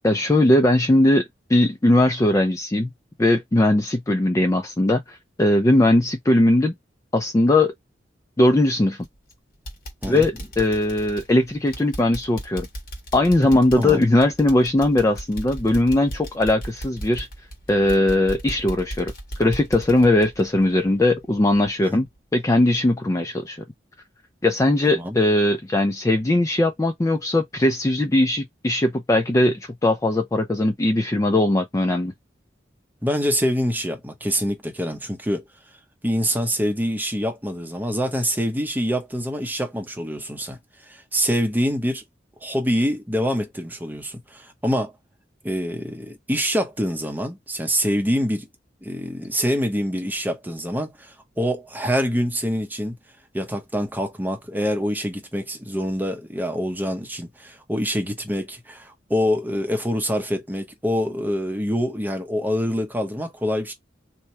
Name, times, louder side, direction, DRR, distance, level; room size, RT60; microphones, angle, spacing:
voice 1, 0.0-1.2 1.5-2.9 3.2-6.7 7.1-7.7 8.4-9.1 10.1-12.7 13.1-17.3 17.7-19.1 19.4-22.1 22.3-23.6 24.4-32.1, left 1 dB, 15° left, 0.4 m, -19 dB
sound 1, 9.0-9.3 9.7-21.2 21.6-21.7 22.2-22.3, right 1 dB, 50° left, 1.4 m, -36 dB
voice 2, 33.0-35.4 36.0-42.0 42.4-44.9 45.4-48.5 48.8-52.9 53.3-63.7, equal, 10° right, 0.8 m, -25 dB
2.9 x 2.2 x 4.1 m
head